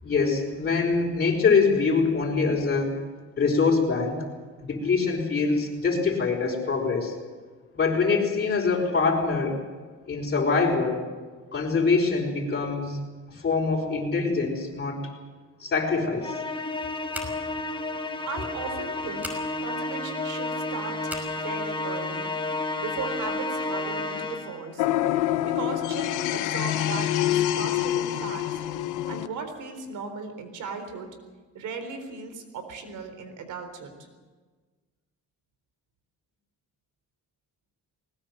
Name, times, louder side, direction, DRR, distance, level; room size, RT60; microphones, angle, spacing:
voice 1, 0.0-2.9 3.4-4.2 4.6-7.1 7.7-9.6 10.1-11.1 11.5-13.0 13.3-15.0 15.6-16.3, left 4 dB, 35° left, -3 dB, 5.2 m, -24 dB
Musical instrument, 16.2-24.7, left 2 dB, 15° left, 2.0 m, -31 dB
Scissors, 17.1-17.6 19.2-19.4 21.0-21.3, left 1 dB, 5° right, 5.6 m, -37 dB
voice 2, 18.3-22.3 22.8-24.9 25.2-28.6 29.1-31.1 31.5-33.9, right 4 dB, 80° right, 8 dB, 4.0 m, -37 dB
sound 1, 24.8-29.3, left 13 dB, 90° left, 1.0 m, -26 dB
20.0 x 19.0 x 7.9 m, 1.4 s
cardioid pair, 90°, 30 cm